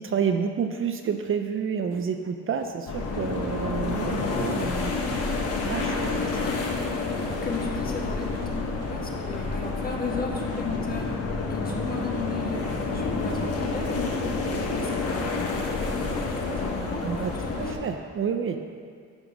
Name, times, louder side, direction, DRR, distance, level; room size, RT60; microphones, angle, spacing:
voice 1, 0.0-5.0 5.6-6.2 17.0-17.3 17.6-18.6, right 6 dB, 45° right, 6 dB, 0.5 m, -29 dB
sound 1, 1.0-1.2 1.9-2.1 2.6-2.9 3.3-3.5 4.2-4.5 5.0-5.2 5.5-5.6 6.0-6.4 6.8-7.6 8.1-8.5 8.8-9.0 9.6-9.9 10.5-10.9 11.6-12.0 12.7-13.1 13.9-14.3 14.7-15.0 15.8-16.1 16.5-16.9 17.3-17.6, right 5 dB, 80° right, 1.1 m, -48 dB
sound 2, 2.9-17.7, left 3 dB, 55° left, 1.2 m, -29 dB
voice 2, 6.0-11.2 11.5-12.7 12.9-14.0 14.6-17.8, left 3 dB, 30° left, 0 dB, 1.4 m, -36 dB
10.5 x 3.6 x 6.1 m, 2.1 s
cardioid pair, 90°, 30 cm